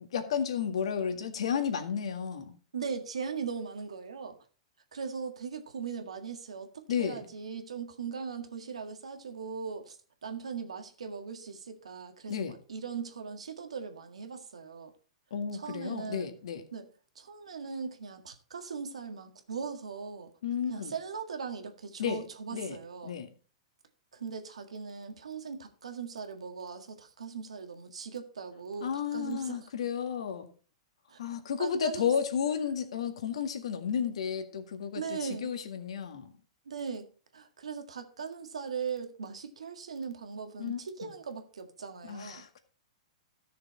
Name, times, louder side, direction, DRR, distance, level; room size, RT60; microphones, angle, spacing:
voice 1, 0.0-2.6 6.9-7.3 12.3-12.5 15.3-16.7 20.4-20.9 22.0-22.2 22.5-22.8 23.0-23.3 28.8-30.5 31.2-36.3 40.6-40.8 42.0-42.6, left 7 dB, 75° left, 7 dB, 1.9 m, -32 dB
voice 2, 2.7-4.4 4.9-14.9 15.5-16.3 16.7-16.9 17.2-20.3 20.7-23.1 24.1-29.6 31.1-31.2 31.6-32.1 34.9-35.5 36.7-37.1 37.3-42.4, right 6 dB, 85° right, 6 dB, 1.8 m, -39 dB
14.0 x 6.6 x 4.3 m, 0.38 s
hypercardioid pair, 120°, 3 cm